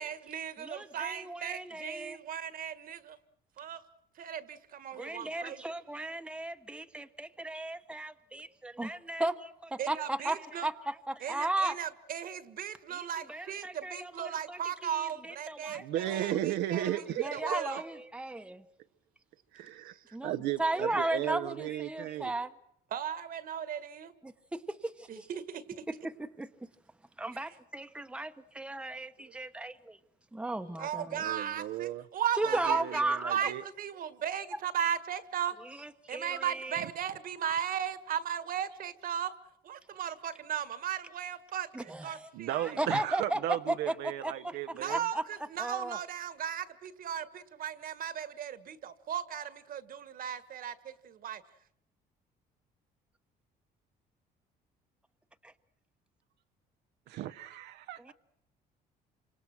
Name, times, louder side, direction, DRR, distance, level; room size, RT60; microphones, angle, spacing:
voice 1, 0.0-3.2 3.6-3.9 4.2-5.6 9.8-10.7 11.2-17.0 17.3-17.8 19.9-20.2 22.9-24.1 25.1-25.9 27.3-27.5 30.8-33.0 33.3-35.6 36.1-39.4 39.6-42.8 44.7-51.4, right 9 dB, 55° right, 1.8 m, -36 dB
voice 2, 0.6-2.2 5.0-11.8 12.9-16.1 16.9-18.6 20.1-20.3 20.6-22.5 24.2-25.3 26.0-26.5 27.2-30.0 30.3-31.2 32.4-33.5 35.8-36.9 41.7-43.4 43.7-44.6 44.9-45.2 45.6-46.0 55.4-55.5 58.0-58.1, right 2 dB, 5° right, 1.2 m, -36 dB
voice 3, 15.7-17.6 19.5-19.9 20.2-22.3 31.1-32.0 32.5-33.6 39.9-40.0 42.3-45.0 57.1-58.0, right 13 dB, 80° right, 1.1 m, -35 dB
28.0 x 26.0 x 6.2 m
cardioid pair, 110°, 17 cm